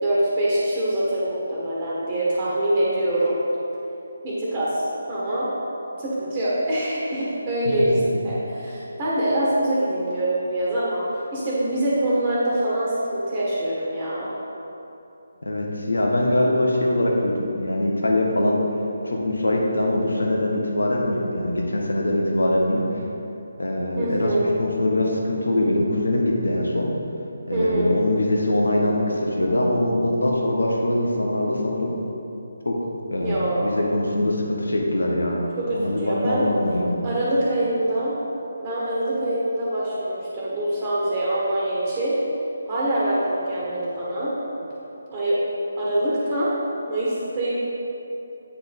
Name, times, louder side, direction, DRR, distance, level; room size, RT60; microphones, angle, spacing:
voice 1, 0.0-3.4 4.2-4.8 5.1-5.5 6.0-8.0 8.2-11.0 11.3-14.3 24.0-24.6 27.5-28.0 33.2-33.8 35.6-36.5 37.0-38.1 38.6-42.1 42.6-44.3 45.1-45.4 45.7-46.5 46.9-47.5, right 1 dB, 20° right, -8 dB, 1.5 m, -24 dB
voice 2, 15.4-18.6 19.0-22.8 23.6-26.9 27.5-31.9 32.6-32.8 33.1-35.4 35.7-37.0, left 1 dB, 70° left, -1 dB, 1.3 m, -23 dB
8.5 x 5.8 x 3.6 m, 2.9 s
figure-of-eight pair, 150°, 0 cm